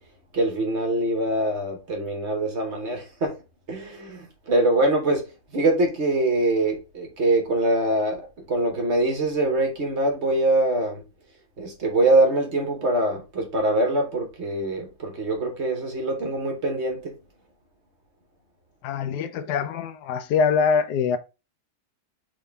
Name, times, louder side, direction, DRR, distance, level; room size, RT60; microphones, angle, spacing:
voice 1, 0.3-3.3 3.7-5.2 5.5-11.0 11.6-17.1, right 2 dB, 50° right, 1.2 m, -23 dB
voice 2, 18.8-21.2, left 6 dB, 85° left, 1.1 m, -23 dB
3.7 x 3.5 x 3.3 m
omnidirectional pair, 1.7 m